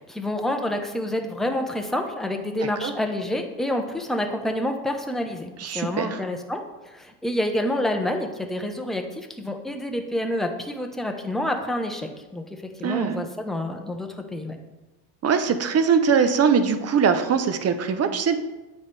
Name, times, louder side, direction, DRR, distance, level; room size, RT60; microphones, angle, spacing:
voice 1, 0.0-14.6, left 1 dB, ahead, 3 dB, 0.7 m, -28 dB
voice 2, 5.6-6.2 12.8-13.3 15.2-18.4, right 6 dB, 30° right, 9 dB, 0.7 m, -22 dB
8.4 x 4.2 x 3.3 m, 1.1 s
supercardioid pair, 95°, 49 cm